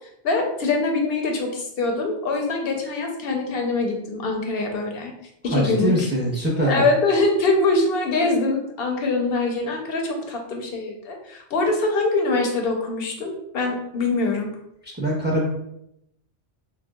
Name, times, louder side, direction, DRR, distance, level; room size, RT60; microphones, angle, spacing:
voice 1, 0.2-5.1 5.4-5.9 6.7-14.5, left 3 dB, 60° left, 2 dB, 1.0 m, -23 dB
voice 2, 5.5-6.9 14.8-15.6, equal, 10° right, -3 dB, 0.8 m, -23 dB
6.8 x 2.3 x 2.3 m, 0.79 s
omnidirectional pair, 1.2 m